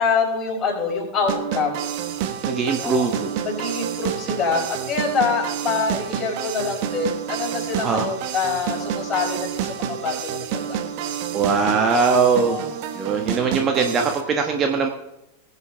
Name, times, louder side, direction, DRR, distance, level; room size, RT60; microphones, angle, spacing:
voice 1, 0.0-1.8 2.8-3.1 3.4-10.8 11.1-11.2 12.4-12.7, left 5 dB, 25° left, -2 dB, 5.1 m, -25 dB
sound 1, 1.3-14.2, right 9 dB, 45° right, 1.3 m, -29 dB
voice 2, 2.4-3.3 7.8-8.1 11.3-12.7 12.9-14.9, right 5 dB, 25° right, 3 dB, 1.3 m, -21 dB
20.0 x 8.2 x 3.5 m, 0.90 s
figure-of-eight pair, 90°, 0 cm